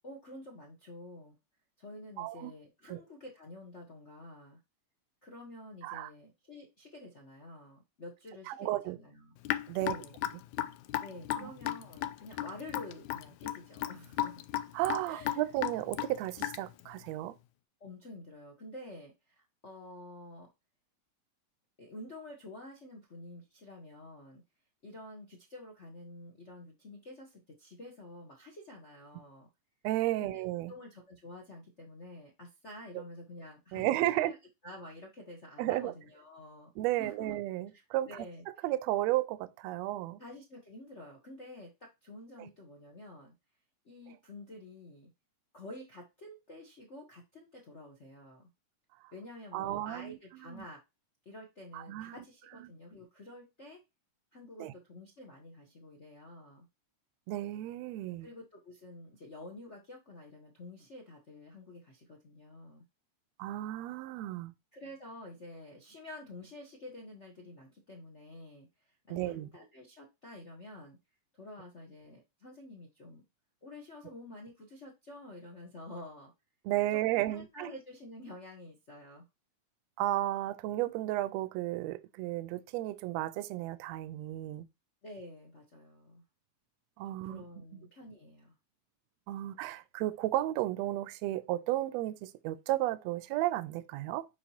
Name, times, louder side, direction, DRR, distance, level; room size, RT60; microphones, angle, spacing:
voice 1, 0.0-1.3 1.8-4.6 5.2-9.3 9.8-10.1 11.0-14.4 15.1-15.4 17.8-20.5 21.8-24.4 24.8-29.5 30.2-30.4 30.7-34.4 34.6-36.7 37.0-37.3 37.7-38.4 40.2-43.3 43.8-45.1 45.5-48.5 49.1-50.8 51.2-53.8 54.3-56.7 58.2-62.8 64.7-71.0 71.4-73.2 73.6-76.3 76.9-79.3 85.0-86.2 87.1-88.5, left 1 dB, 65° left, 0.6 m, -49 dB
voice 2, 2.2-2.5 2.9-3.0 5.8-6.1 8.5-9.0 9.7-9.9 11.3-11.5 14.7-17.3 29.8-30.7 33.7-34.3 35.6-35.9 36.8-38.2 38.6-40.2 49.5-50.2 50.5-50.6 51.7-52.2 54.6-54.7 57.3-58.3 63.4-64.5 69.1-69.5 76.6-77.7 80.0-84.6 87.0-87.4 89.3-94.3, right 15 dB, 80° right, 1.7 m, -33 dB
Raindrop / Drip, 9.5-16.8, left 13 dB, 85° left, 2.0 m, -35 dB
7.1 x 5.1 x 2.9 m
omnidirectional pair, 3.3 m